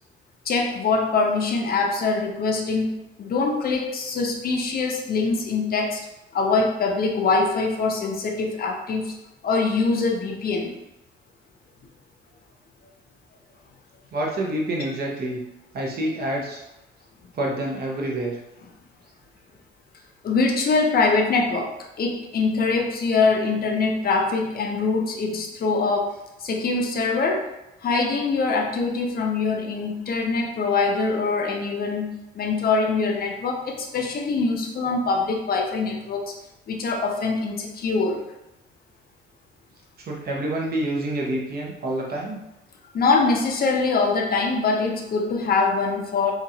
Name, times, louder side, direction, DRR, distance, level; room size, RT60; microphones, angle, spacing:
voice 1, 0.5-6.0 6.3-9.1 9.4-10.7 20.2-26.1 26.4-27.4 27.8-36.3 36.7-38.2 42.9-46.3, left 4 dB, 50° left, 1 dB, 0.6 m, -23 dB
voice 2, 14.1-15.4 15.7-16.6 17.3-18.4 40.1-42.4, right 1 dB, 50° right, -1 dB, 0.7 m, -27 dB
2.9 x 2.4 x 2.7 m, 0.91 s
cardioid pair, 90°, 20 cm